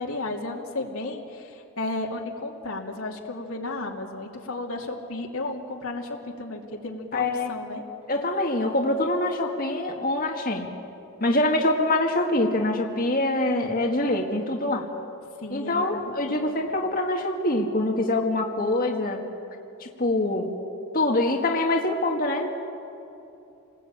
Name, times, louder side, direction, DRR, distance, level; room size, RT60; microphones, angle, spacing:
voice 1, 0.0-7.8 15.4-16.5, left 2 dB, 75° left, 0 dB, 2.8 m, -33 dB
voice 2, 7.1-7.5 8.1-10.7 11.2-14.9 15.5-19.2 19.8-20.5 20.9-22.5, left 2 dB, 40° left, 1 dB, 1.9 m, -24 dB
29.0 x 20.0 x 8.9 m, 2.8 s
head